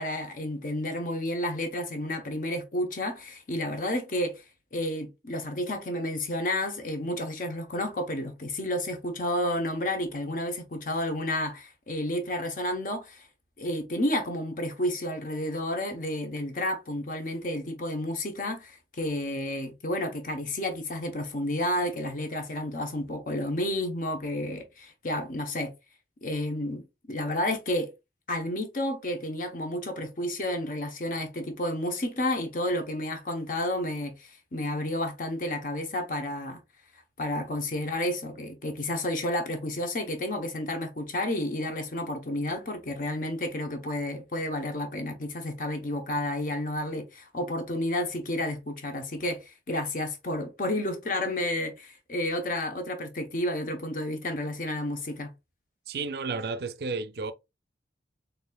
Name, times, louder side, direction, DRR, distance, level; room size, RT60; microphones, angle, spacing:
voice 1, 0.0-4.4 4.7-13.3 13.6-25.7 26.2-27.9 28.3-36.6 37.2-55.3, left 1 dB, 50° left, 0.8 m, -31 dB
voice 2, 55.9-57.3, right 4 dB, 60° right, 0.4 m, -32 dB
4.1 x 3.2 x 2.2 m
head